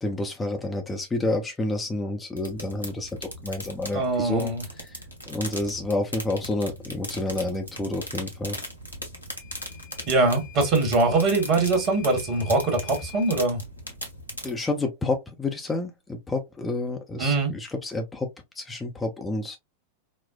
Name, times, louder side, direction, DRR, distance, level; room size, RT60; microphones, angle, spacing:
voice 1, 0.0-4.5 4.8-5.0 5.3-8.6 14.4-18.3 18.6-19.6, left 2 dB, 15° left, 0.5 m, -29 dB
sound 1, 2.4-14.5, equal, 90° right, 0.9 m, -39 dB
voice 2, 3.9-4.6 10.1-13.6 17.2-17.5, right 3 dB, 40° right, 1.3 m, -22 dB
Microwave oven / Alarm, 9.4-13.5, left 12 dB, 75° right, 1.2 m, -47 dB
4.3 x 2.0 x 2.3 m
figure-of-eight pair, 90°, 0 cm